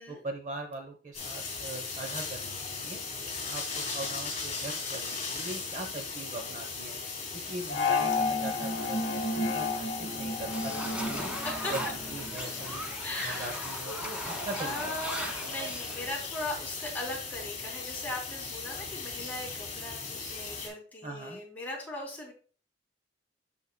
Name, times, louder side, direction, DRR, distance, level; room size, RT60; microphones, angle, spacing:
voice 1, 0.1-3.0 3.4-7.0 7.3-11.2 11.7-12.9 13.2-14.9 21.0-21.4, right 2 dB, 40° right, 4 dB, 0.9 m, -41 dB
sound 1, 1.1-20.7, left 4 dB, 40° left, 3.7 m, -38 dB
sound 2, 7.7-12.3, left 3 dB, 70° left, 1.0 m, -31 dB
sound 3, 10.5-16.2, equal, 5° right, 1.4 m, -38 dB
voice 2, 13.0-13.6 14.6-22.3, left 2 dB, 10° left, -5 dB, 3.1 m, -39 dB
14.0 x 4.7 x 2.3 m, 0.41 s
head